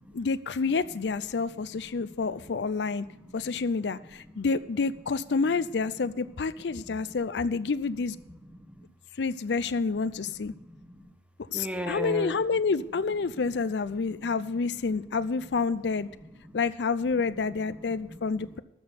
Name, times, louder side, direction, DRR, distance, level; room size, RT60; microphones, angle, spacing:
voice 1, 0.1-3.1 3.3-8.2 9.2-10.5 11.5-16.1 16.5-18.6, left 4 dB, 75° left, 15 dB, 0.5 m, -28 dB
voice 2, 1.3-4.0 4.2-4.5 6.7-7.2 7.5-7.7 8.2-8.9 10.2-11.1 11.5-12.4 13.3-13.4 13.9-14.4 14.6-15.4 16.0-16.6 17.7-18.6, equal, 5° right, 7 dB, 1.0 m, -42 dB
13.0 x 6.2 x 9.4 m, 0.94 s
head